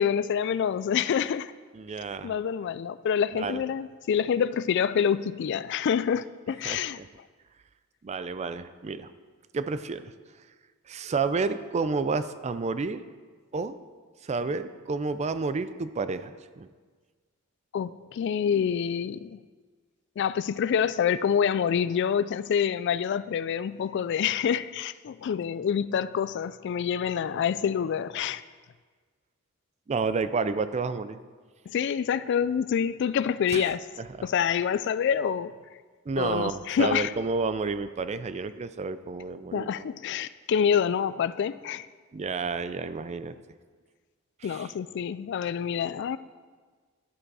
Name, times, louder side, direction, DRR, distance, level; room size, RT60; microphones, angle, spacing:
voice 1, 0.0-1.5 2.2-7.0 17.7-19.4 20.2-28.4 31.7-33.8 34.2-35.5 36.2-37.1 39.5-41.9 44.4-46.2, left 7 dB, 55° left, 16 dB, 0.3 m, -27 dB
voice 2, 1.7-2.4 3.4-3.6 6.6-7.1 8.0-9.1 9.5-10.1 10.9-13.0 13.5-13.8 14.2-16.7 29.9-31.2 33.5-33.7 34.2-34.3 36.1-39.9 42.1-43.3 44.4-44.7, right 4 dB, 30° right, 13 dB, 0.4 m, -30 dB
11.5 x 7.8 x 4.8 m, 1.5 s
head